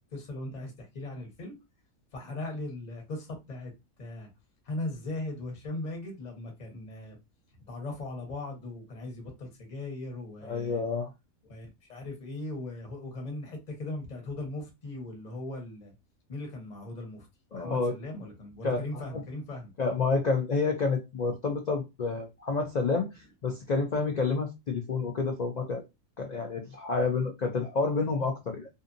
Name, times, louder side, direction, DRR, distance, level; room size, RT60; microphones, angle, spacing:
voice 1, 0.1-1.6 2.1-3.7 4.0-4.3 4.6-7.2 7.7-10.8 11.5-15.9 16.3-17.3 17.5-19.7, left 2 dB, 35° left, 1.0 m, -38 dB
voice 2, 10.4-11.1 17.5-17.9 18.6-18.8 19.1-19.2 19.8-25.8 26.2-28.7, left 4 dB, 75° left, 0.4 m, -29 dB
2.6 x 2.5 x 2.5 m
omnidirectional pair, 1.4 m